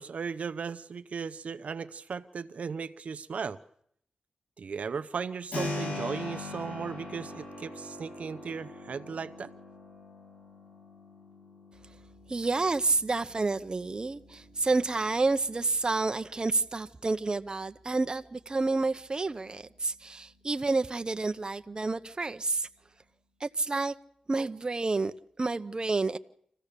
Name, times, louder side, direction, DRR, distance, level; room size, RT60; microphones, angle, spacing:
voice 1, 0.0-3.6 4.6-9.5, right 5 dB, 70° right, 0.7 m, -36 dB
Keyboard (musical), 5.5-16.2, left 2 dB, 65° left, 6.6 m, -42 dB
voice 2, 12.3-22.7 23.4-23.9 24.3-26.2, right 3 dB, 35° right, 0.7 m, -29 dB
26.0 x 15.5 x 6.7 m
cardioid pair, 70°, 2 cm